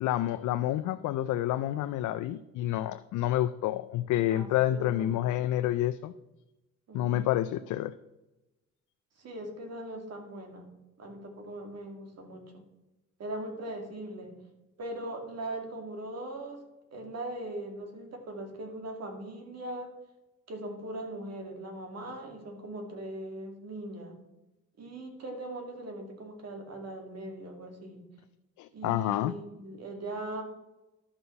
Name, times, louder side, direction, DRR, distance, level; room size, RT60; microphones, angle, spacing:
voice 1, 0.0-6.1 6.9-7.9 28.6-29.3, left 13 dB, 80° left, 11 dB, 0.4 m, -29 dB
voice 2, 4.3-5.2 6.9-7.3 9.2-10.7 11.0-12.7 13.2-14.3 14.8-16.6 16.9-19.9 20.5-24.2 24.8-28.0 28.7-30.4, right 1 dB, 55° right, 3 dB, 2.3 m, -40 dB
11.5 x 5.5 x 5.7 m, 1.0 s
cardioid pair, 90°, 30 cm